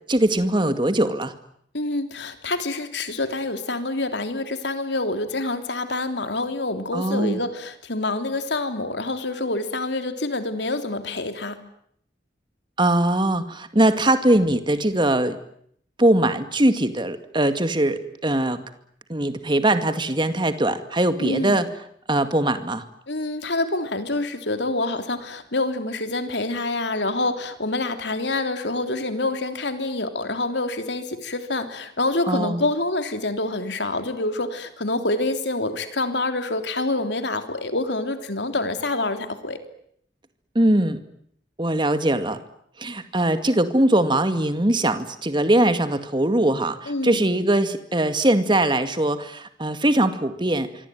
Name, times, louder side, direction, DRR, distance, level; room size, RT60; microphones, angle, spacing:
voice 1, 0.1-1.3 6.9-7.4 12.8-15.4 16.0-18.6 19.1-21.7 22.1-22.8 32.3-32.6 40.6-41.0 41.6-42.4 42.8-50.7, right 1 dB, 25° right, 10 dB, 2.1 m, -21 dB
voice 2, 1.7-11.6 21.2-21.6 23.1-39.6 46.9-47.2, left 2 dB, 70° left, 8 dB, 3.3 m, -27 dB
26.0 x 24.5 x 9.3 m, 0.68 s
head